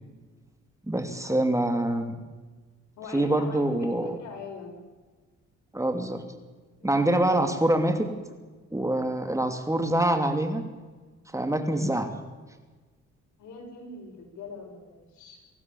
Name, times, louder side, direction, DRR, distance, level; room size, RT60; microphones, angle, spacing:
voice 1, 0.9-2.2 3.1-4.2 5.7-6.2 6.8-8.1 8.7-10.6 11.3-12.1, right 1 dB, 10° right, 7 dB, 2.8 m, -25 dB
voice 2, 3.0-4.8 6.8-7.0 13.4-15.4, left 4 dB, 75° left, 1 dB, 7.3 m, -43 dB
24.5 x 16.5 x 7.3 m, 1.3 s
cardioid pair, 90°, 30 cm